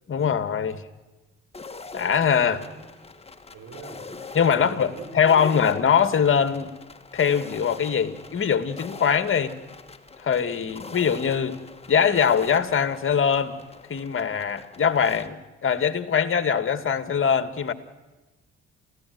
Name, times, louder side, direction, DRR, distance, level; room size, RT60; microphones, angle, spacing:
voice 1, 0.1-0.8 1.9-2.6 4.3-6.7 7.1-9.5 10.2-11.6 11.9-13.6 13.9-17.7, left 7 dB, 45° left, 1.8 m, -22 dB
sound 1, 1.5-15.3, left 4 dB, 20° left, 1.6 m, -43 dB
voice 2, 2.4-3.1 3.5-4.3 4.5-5.9, right 5 dB, 65° right, 5.5 m, -43 dB
29.5 x 15.0 x 9.4 m
cardioid pair, 90°, 30 cm